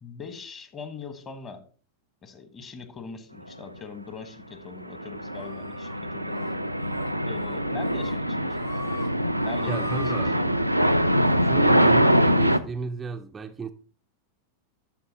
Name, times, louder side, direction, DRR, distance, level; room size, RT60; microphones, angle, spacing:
voice 1, 0.0-1.6 2.2-6.3 7.2-8.7 9.4-10.6, left 5 dB, 25° left, 1.2 m, -41 dB
sound 1, 4.8-12.6, equal, 90° right, 0.4 m, -23 dB
sound 2, 5.4-6.0 6.3-6.5 6.9-7.1 7.4-8.2 8.5-9.1 9.4-10.2, left 3 dB, 50° left, 2.9 m, -43 dB
voice 2, 9.7-10.4 11.3-13.7, right 4 dB, 15° right, 0.4 m, -33 dB
12.0 x 4.1 x 4.0 m
figure-of-eight pair, 90°, 0 cm